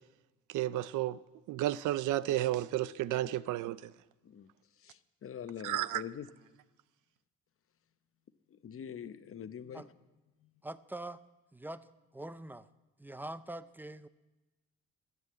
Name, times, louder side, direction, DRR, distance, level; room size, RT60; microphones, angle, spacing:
voice 1, 0.5-1.2 1.5-3.9 5.6-6.0, right 14 dB, 85° right, 0.5 m, -32 dB
voice 2, 4.8-6.3 8.5-9.8 10.4-10.5, left 8 dB, 45° left, 0.9 m, -44 dB
voice 3, 10.6-11.2 11.5-11.9 12.1-12.7 13.0-14.1, right 1 dB, 5° right, 0.5 m, -43 dB
12.5 x 9.6 x 7.6 m
cardioid pair, 90°, 30 cm